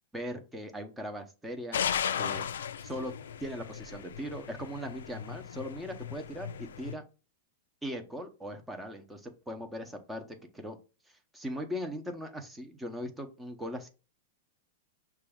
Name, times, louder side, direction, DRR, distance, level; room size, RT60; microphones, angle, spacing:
voice 1, 0.1-1.8 2.2-2.5 2.8-3.1 3.4-7.0 7.8-10.8 11.1-13.9, equal, 5° right, 5 dB, 0.7 m, -39 dB
sound 1, 1.7-6.9, left 8 dB, 85° left, 0.3 m, -36 dB
5.9 x 2.3 x 3.5 m, 0.33 s
hypercardioid pair, 135°, 0 cm